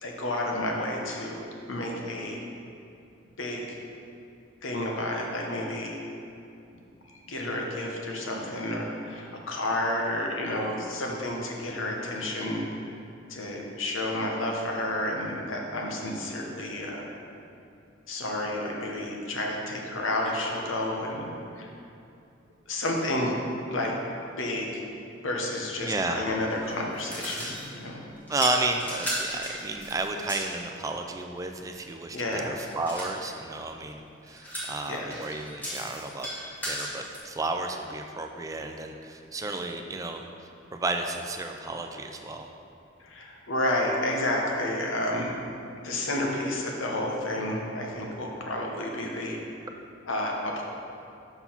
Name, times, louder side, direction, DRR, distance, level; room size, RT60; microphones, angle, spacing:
voice 1, 0.0-1.4 1.7-2.4 3.4-3.8 4.6-6.0 6.7-6.8 7.1-12.7 13.3-17.1 18.1-21.3 21.6-21.7 22.7-23.3 23.7-23.9 24.4-24.8 25.2-28.0 32.1-32.5 34.9-35.1 43.0-45.3 45.8-49.4 50.1-50.6, left 1 dB, 85° left, 0 dB, 1.0 m, -30 dB
voice 2, 25.8-26.3 28.3-36.3 36.6-40.3 40.7-42.5, right 2 dB, 15° right, 4 dB, 0.3 m, -32 dB
sound 1, 26.5-27.8 28.3-30.6 32.6-33.2 34.3-37.2, equal, 10° left, 1.2 m, -35 dB
5.5 x 4.5 x 5.7 m, 2.6 s
head